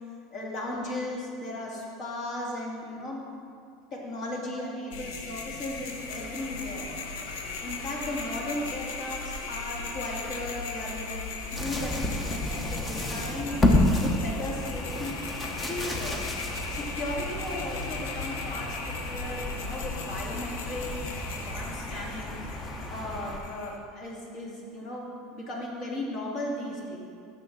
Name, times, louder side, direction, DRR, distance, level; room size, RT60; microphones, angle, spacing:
voice 1, 0.3-3.2 3.9-6.9 7.6-11.2 11.5-13.5 14.0-15.2 15.7-16.2 16.7-22.4 22.9-27.0, left 1 dB, 45° left, -3 dB, 2.3 m, -36 dB
sound 1, 4.9-23.8, left 4 dB, 85° left, 0.9 m, -37 dB
sound 2, 11.5-23.4, left 1 dB, 15° left, 0.9 m, -31 dB
12.0 x 7.0 x 3.9 m, 2.4 s
supercardioid pair, 140°, 0 cm